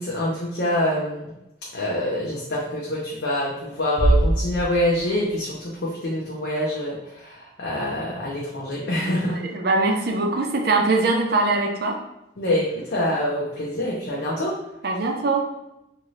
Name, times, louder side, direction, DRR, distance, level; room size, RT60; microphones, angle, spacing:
voice 1, 0.0-1.3 1.7-9.4 12.4-14.5, left 1 dB, 65° left, -4 dB, 0.6 m, -25 dB
sound 1, 4.0-5.4, right 1 dB, 80° right, 0.8 m, -22 dB
voice 2, 9.4-12.0 14.8-15.5, right 3 dB, 55° right, 2 dB, 0.5 m, -22 dB
2.6 x 2.5 x 3.1 m, 0.89 s
head